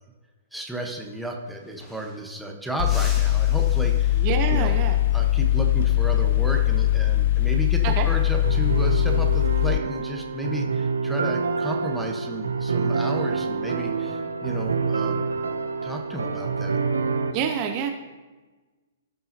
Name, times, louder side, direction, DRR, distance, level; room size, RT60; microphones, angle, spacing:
voice 1, 0.5-4.2 4.5-4.8 5.1-15.2 15.8-16.8, right 1 dB, ahead, 0 dB, 1.2 m, -33 dB
sound 1, 1.5-2.4 2.8-4.6 7.0-7.3 8.7-9.2, left 1 dB, 20° left, 1.8 m, -45 dB
Mechanical fan, 2.8-9.8, left 14 dB, 55° left, 0.3 m, -21 dB
voice 2, 4.2-5.0 7.8-8.0 17.3-17.9, right 8 dB, 40° right, 4 dB, 0.9 m, -26 dB
sound 2, 8.4-17.3, right 4 dB, 85° right, 0.8 m, -27 dB
16.0 x 5.4 x 2.9 m, 1.2 s
hypercardioid pair, 120°, 0 cm